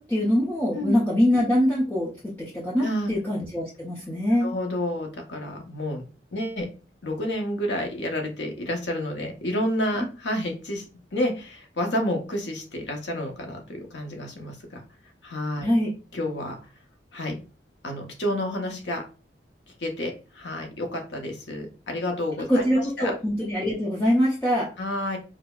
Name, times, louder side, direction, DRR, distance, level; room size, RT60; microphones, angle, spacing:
voice 1, 0.0-4.5 15.6-15.9 22.5-24.7, equal, 10° left, -7 dB, 0.6 m, -23 dB
voice 2, 2.8-3.1 4.4-6.0 6.3-6.7 7.0-10.8 11.1-14.8 15.2-15.7 16.1-16.5 17.1-17.4 17.8-19.0 19.8-22.7 23.0-23.1 24.8-25.2, left 1 dB, 70° left, 3 dB, 0.8 m, -29 dB
4.7 x 2.0 x 2.3 m, 0.33 s
head